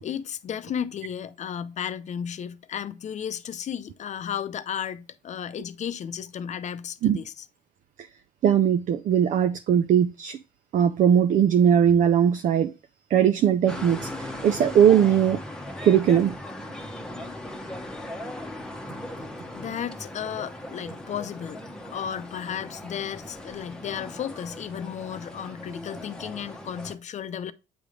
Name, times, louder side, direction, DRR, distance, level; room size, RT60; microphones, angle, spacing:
voice 1, 0.0-7.3 19.5-27.5, left 8 dB, 45° left, 0.6 m, -34 dB
voice 2, 8.4-10.4 10.7-12.7 13.1-15.4 15.8-16.4, right 9 dB, 50° right, 0.5 m, -20 dB
sound 1, 13.7-27.0, left 1 dB, 5° left, 1.0 m, -38 dB
8.7 x 3.2 x 5.1 m
cardioid pair, 110°, 17 cm